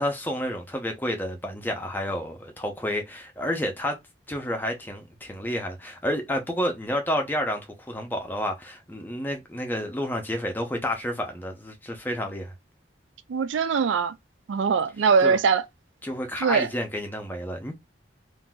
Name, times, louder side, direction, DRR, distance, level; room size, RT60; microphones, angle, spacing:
voice 1, 0.0-4.0 4.3-12.5 15.2-15.4 16.0-17.7, equal, 10° left, 0.6 m, -30 dB
voice 2, 13.3-14.1 14.5-15.6 16.4-16.7, right 5 dB, 85° right, 0.4 m, -22 dB
3.8 x 2.5 x 2.3 m
head